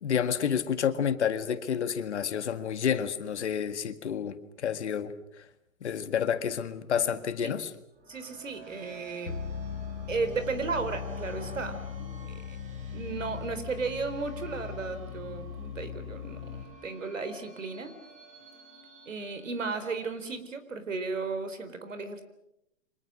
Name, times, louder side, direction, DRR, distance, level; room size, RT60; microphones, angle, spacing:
voice 1, 0.0-5.1 5.8-7.7, left 8 dB, 55° left, 2.0 m, -29 dB
sound 1, 7.9-20.4, right 3 dB, 20° right, 4.1 m, -50 dB
voice 2, 8.1-9.3 10.1-12.6 12.9-17.9 19.1-22.2, right 4 dB, 70° right, 4.3 m, -35 dB
sound 2, 9.3-16.6, left 7 dB, 75° left, 2.3 m, -39 dB
29.5 x 25.0 x 6.4 m
figure-of-eight pair, 125°, 40 cm